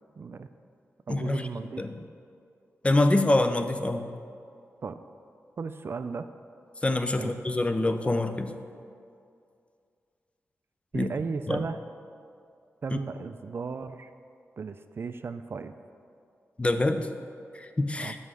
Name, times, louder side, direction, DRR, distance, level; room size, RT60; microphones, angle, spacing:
voice 1, 0.2-0.5 1.1-1.9 4.8-5.0 5.6-6.3 7.2-7.4 10.9-11.8 12.8-14.1 14.6-15.7 18.0-18.2, right 4 dB, 50° right, 10 dB, 0.3 m, -35 dB
voice 2, 1.1-1.5 1.8-1.9 2.8-4.1 6.8-8.5 10.9-11.1 11.5-11.7 12.9-13.0 16.6-17.0 17.5-18.2, left 2 dB, 25° left, 8 dB, 0.5 m, -25 dB
6.1 x 5.5 x 6.3 m, 2.4 s
cardioid pair, 70°, 5 cm